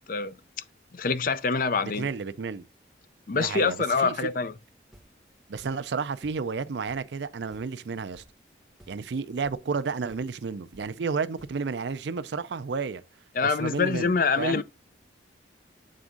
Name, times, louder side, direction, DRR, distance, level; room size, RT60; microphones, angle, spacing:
voice 1, 0.9-2.1 3.3-4.5 13.4-14.6, left 4 dB, 50° left, 0.5 m, -25 dB
voice 2, 1.8-2.6 3.3-4.3 5.5-8.2 8.9-13.0 13.4-14.6, right 5 dB, 70° right, 0.5 m, -32 dB
sound 1, 4.6-6.0 6.2-7.2 7.5-7.9 8.1-8.5 8.8-9.2 9.4-9.8 10.1-11.6, equal, ahead, 1.2 m, -55 dB
7.5 x 3.5 x 3.8 m
head